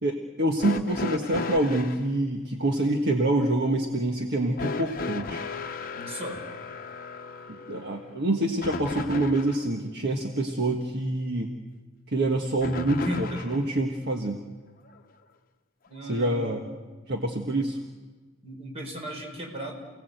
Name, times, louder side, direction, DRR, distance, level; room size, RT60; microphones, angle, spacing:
voice 1, 0.0-5.5 7.5-11.5 12.1-14.4 16.1-16.6 17.1-17.8, right 1 dB, 55° right, 3 dB, 1.5 m, -26 dB
sound 1, 0.6-2.0 4.6-9.7 12.6-13.7 14.9-15.0 16.1-16.2, left 4 dB, 45° left, 1.0 m, -35 dB
voice 2, 5.9-6.4 12.9-13.5 15.9-16.7 18.4-19.8, equal, 30° right, 2 dB, 4.8 m, -36 dB
29.0 x 18.0 x 8.0 m, 1.3 s
head